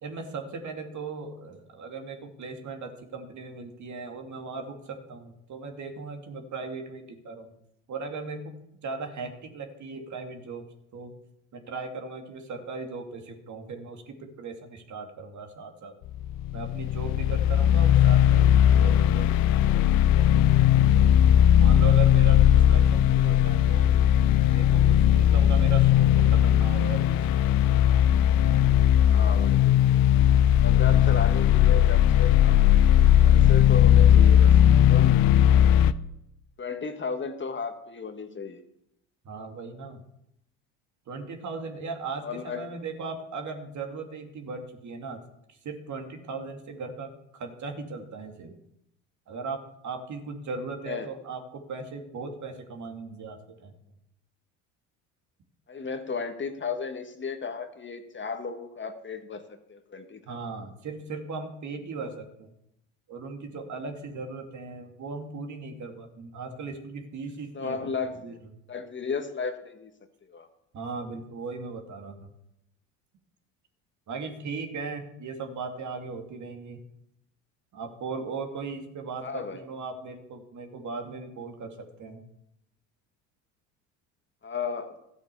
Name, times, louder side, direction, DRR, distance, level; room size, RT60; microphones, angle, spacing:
voice 1, 0.0-7.5 7.9-8.5 8.8-10.6 10.9-11.1 11.5-15.9 16.5-21.1 21.6-23.9 24.5-27.4 28.4-28.6 39.2-40.0 41.1-45.2 45.5-48.6 49.3-53.7 60.3-62.5 63.1-67.9 68.2-68.4 70.7-72.3 74.1-76.8 77.7-82.3, right 4 dB, 45° right, 4 dB, 2.5 m, -38 dB
sound 1, 16.1-35.9, left 10 dB, 60° left, 0.8 m, -18 dB
voice 2, 29.1-30.1 30.5-32.7 33.2-35.2 36.6-38.6 42.2-42.7 50.9-51.1 55.7-60.4 67.5-68.4 68.7-69.9 70.3-70.5 79.2-79.6 84.4-84.9, left 5 dB, 30° left, 7 dB, 1.6 m, -34 dB
13.5 x 8.3 x 6.9 m, 0.80 s
supercardioid pair, 80°, 39 cm